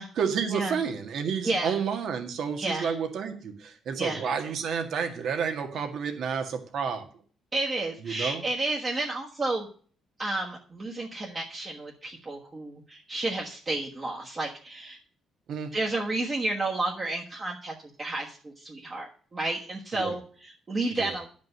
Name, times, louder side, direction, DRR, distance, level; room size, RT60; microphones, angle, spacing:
voice 1, 0.2-7.1 8.0-8.4 15.5-15.7 19.9-20.2 20.9-21.2, right 6 dB, 60° right, 5 dB, 1.8 m, -30 dB
voice 2, 1.4-1.8 2.6-2.9 4.0-4.2 7.5-9.7 10.2-15.0 15.7-21.3, right 2 dB, 25° right, -2 dB, 1.4 m, -31 dB
11.0 x 5.2 x 6.6 m, 0.43 s
cardioid pair, 155°, 0 cm